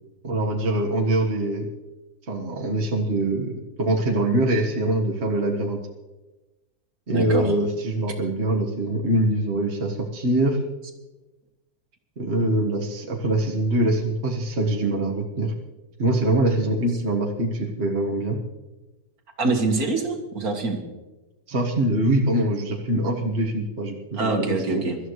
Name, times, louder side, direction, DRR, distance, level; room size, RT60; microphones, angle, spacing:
voice 1, 0.2-1.7 2.3-5.8 7.1-10.6 12.2-15.5 16.0-18.4 21.5-24.8, right 1 dB, 40° right, 0 dB, 1.7 m, -23 dB
voice 2, 7.1-7.5 19.4-20.8 24.1-25.0, right 3 dB, 60° right, 3 dB, 2.2 m, -24 dB
24.0 x 13.5 x 3.2 m, 1.1 s
omnidirectional pair, 1.8 m